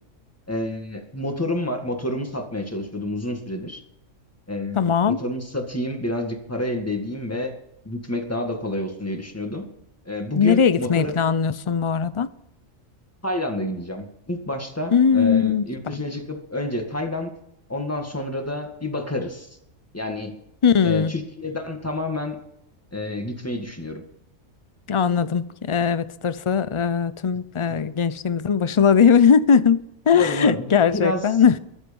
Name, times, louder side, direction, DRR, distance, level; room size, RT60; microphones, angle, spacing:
voice 1, 0.5-3.8 4.5-7.5 7.9-9.6 10.1-11.2 13.2-17.3 17.7-19.5 19.9-20.3 20.8-22.4 22.9-24.0 27.7-27.8 30.1-30.7 30.9-31.2, left 1 dB, 10° left, 2.0 m, -29 dB
voice 2, 4.8-5.2 10.3-12.3 14.9-15.6 20.6-21.1 24.9-31.6, left 7 dB, 45° left, 0.4 m, -19 dB
23.0 x 7.8 x 5.4 m
omnidirectional pair, 1.4 m